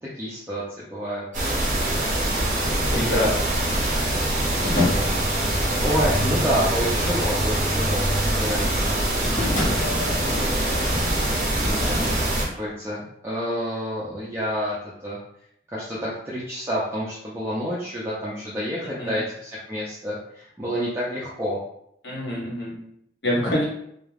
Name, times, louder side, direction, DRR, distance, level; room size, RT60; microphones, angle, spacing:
voice 1, 0.0-1.2 2.9-3.4 5.8-9.0 11.6-12.0 12.5-14.8 15.0-15.2 15.7-21.6, equal, 15° right, -8 dB, 0.4 m, -29 dB
sound 1, 1.3-12.4, right 1 dB, 45° right, 0.8 m, -24 dB
voice 2, 2.9-3.3 11.5-12.0 19.0-19.2 22.0-22.8 23.2-23.6, left 1 dB, 80° left, -5 dB, 1.1 m, -26 dB
sound 2, 3.9-12.2, left 1 dB, 45° left, 0.7 m, -30 dB
2.3 x 2.2 x 3.2 m, 0.73 s
head